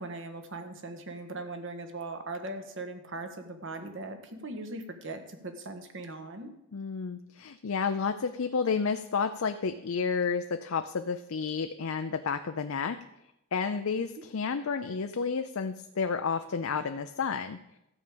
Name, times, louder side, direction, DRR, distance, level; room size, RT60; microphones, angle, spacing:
voice 1, 0.0-6.5, right 2 dB, 60° right, 7 dB, 1.4 m, -39 dB
voice 2, 6.7-13.0 13.5-17.6, left 5 dB, 65° left, 8 dB, 0.5 m, -31 dB
13.0 x 4.9 x 8.5 m, 0.86 s
head